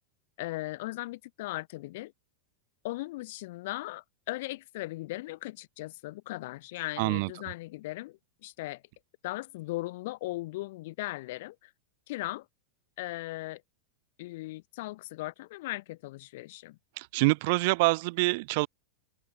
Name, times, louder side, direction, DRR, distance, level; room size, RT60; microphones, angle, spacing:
voice 1, 0.4-2.1 2.8-8.8 9.2-11.7 12.1-12.5 13.0-13.6 14.2-16.8, left 19 dB, 55° left, 6.4 m, -38 dB
voice 2, 7.0-7.3 17.0-18.7, right 25 dB, 55° right, 3.2 m, -26 dB
open air
figure-of-eight pair, 90°, 0 cm